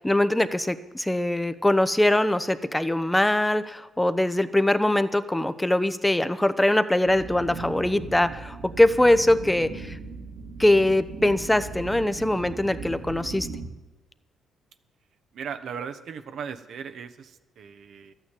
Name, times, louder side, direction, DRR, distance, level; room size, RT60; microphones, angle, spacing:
voice 1, 0.0-10.0 10.6-13.5, left 1 dB, 10° left, 13 dB, 0.8 m, -22 dB
sound 1, 7.1-13.7, right 3 dB, 80° right, 2.5 m, -38 dB
voice 2, 15.3-18.1, right 7 dB, 65° right, 8 dB, 1.0 m, -37 dB
13.0 x 9.1 x 8.2 m, 1.1 s
cardioid pair, 90°, 0 cm